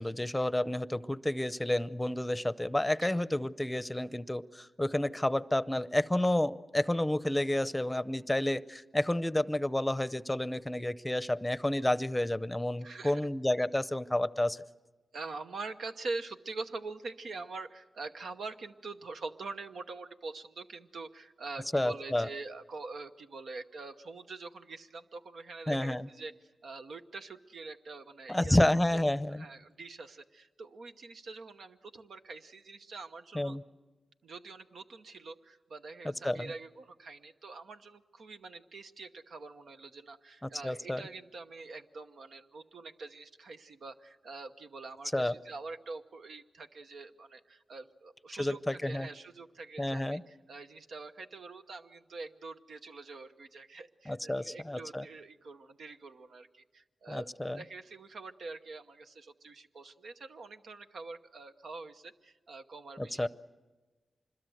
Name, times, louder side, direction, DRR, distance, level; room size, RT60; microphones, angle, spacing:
voice 1, 0.0-14.6 21.7-22.3 25.7-26.1 28.3-29.4 33.3-33.6 36.0-36.5 40.6-41.0 45.1-45.3 48.3-49.1 49.8-50.2 54.1-55.0 57.1-57.6 63.0-63.3, left 1 dB, 10° left, 16 dB, 0.7 m, -30 dB
voice 2, 12.8-13.2 15.1-28.6 28.9-29.0 29.3-33.6 34.2-63.3, right 3 dB, 85° right, 7 dB, 1.0 m, -45 dB
25.5 x 21.5 x 7.9 m, 1.2 s
cardioid pair, 60°, 0 cm